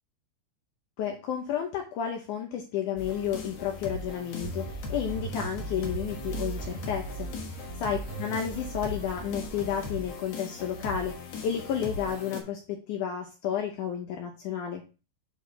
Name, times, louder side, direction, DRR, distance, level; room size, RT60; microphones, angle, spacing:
voice 1, 1.0-7.3 7.8-14.8, left 8 dB, 80° left, 3 dB, 1.8 m, -32 dB
sound 1, 3.0-12.4, left 3 dB, 60° left, 1.6 m, -39 dB
sound 2, 4.4-10.3, right 5 dB, 70° right, 3.0 m, -39 dB
8.7 x 4.8 x 3.3 m, 0.32 s
omnidirectional pair, 4.6 m